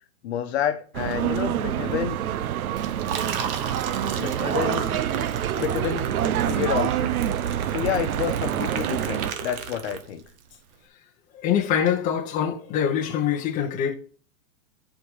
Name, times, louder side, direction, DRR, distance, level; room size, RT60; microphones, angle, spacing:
voice 1, 0.2-2.2 4.2-4.9 5.5-6.1 6.4-7.1 7.7-10.2, left 9 dB, 50° left, 1.2 m, -29 dB
sound 1, 0.9-9.3, right 10 dB, 90° right, 0.8 m, -26 dB
Liquid, 2.7-10.4, right 7 dB, 40° right, 1.2 m, -34 dB
voice 2, 11.4-13.9, left 9 dB, 20° left, 1.0 m, -24 dB
8.5 x 5.0 x 5.3 m
hypercardioid pair, 155°, 42 cm